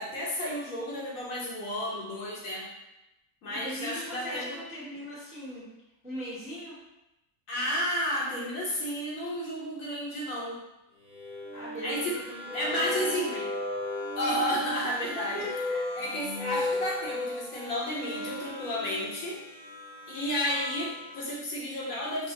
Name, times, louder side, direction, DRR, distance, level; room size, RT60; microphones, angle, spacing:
voice 1, 0.0-2.7 3.4-4.6 7.5-10.6 11.8-12.1 12.5-13.3 14.2-15.6 15.9-19.4 20.1-22.3, equal, 75° left, -5 dB, 1.3 m, -32 dB
voice 2, 3.5-5.6 6.0-6.8 11.5-13.5 15.1-15.8, equal, 5° right, -8 dB, 0.6 m, -40 dB
sound 1, 11.1-21.3, left 1 dB, 45° right, 0.8 m, -36 dB
3.5 x 2.0 x 3.9 m, 0.93 s
omnidirectional pair, 1.4 m